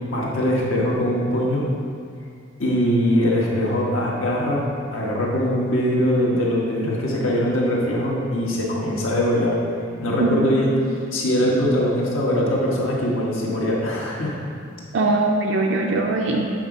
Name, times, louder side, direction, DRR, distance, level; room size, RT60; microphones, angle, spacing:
voice 1, 0.1-1.6 2.6-4.6 4.9-9.6 10.0-10.7 11.1-14.4, equal, 75° left, -4 dB, 1.3 m, -22 dB
voice 2, 14.9-16.5, right 2 dB, 60° right, 0 dB, 0.5 m, -21 dB
7.8 x 3.7 x 5.2 m, 2.3 s
head